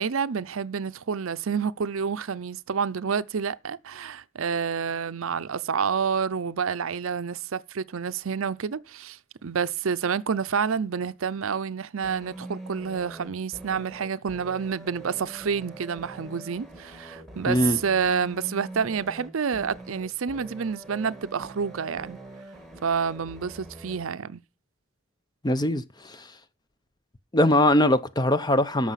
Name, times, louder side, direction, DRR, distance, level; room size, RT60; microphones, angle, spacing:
voice 1, 0.0-22.2 22.8-24.4, right 6 dB, 70° right, 0.5 m, -29 dB
sound 1, 12.0-24.0, right 2 dB, ahead, 1.9 m, -43 dB
voice 2, 17.5-17.8 25.4-26.3 27.3-28.9, left 1 dB, 20° left, 0.6 m, -22 dB
13.0 x 6.2 x 5.7 m
head